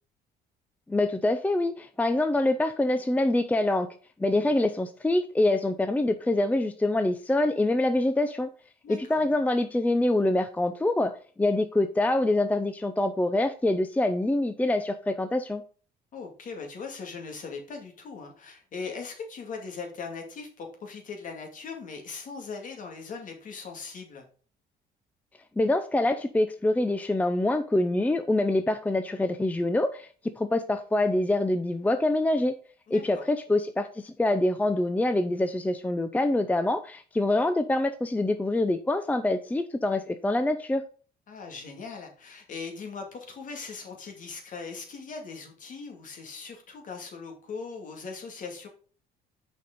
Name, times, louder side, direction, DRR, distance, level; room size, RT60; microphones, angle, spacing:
voice 1, 0.9-3.9 4.2-8.5 8.9-15.6 25.6-30.1 30.4-32.5 32.9-40.8, left 2 dB, 10° left, 0.5 m, -25 dB
voice 2, 8.8-9.2 16.1-24.3 32.9-33.2 41.3-48.7, left 4 dB, 50° left, 2.3 m, -40 dB
6.6 x 5.3 x 5.2 m
cardioid pair, 110°, 17 cm